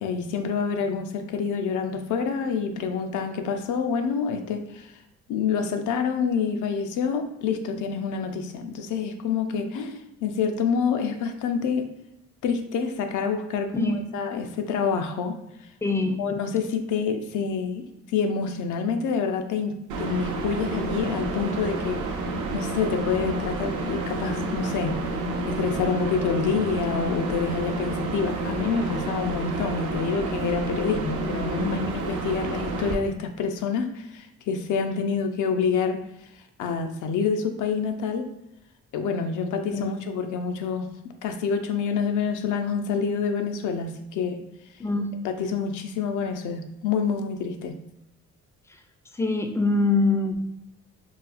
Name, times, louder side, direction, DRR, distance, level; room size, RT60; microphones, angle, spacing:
voice 1, 0.0-4.9 5.3-11.9 12.4-15.4 16.2-22.0 22.5-24.9 25.5-36.0 36.6-38.3 38.9-40.9 41.2-44.4 45.2-47.7, left 6 dB, 80° left, 6 dB, 0.5 m, -27 dB
voice 2, 15.8-16.2 31.6-31.8 39.7-39.9 44.8-45.1 49.2-50.4, left 3 dB, 10° left, 5 dB, 0.3 m, -24 dB
sound 1, 19.9-33.0, right 2 dB, 75° right, 0.6 m, -30 dB
4.0 x 2.3 x 2.4 m, 0.82 s
cardioid pair, 90°, 30 cm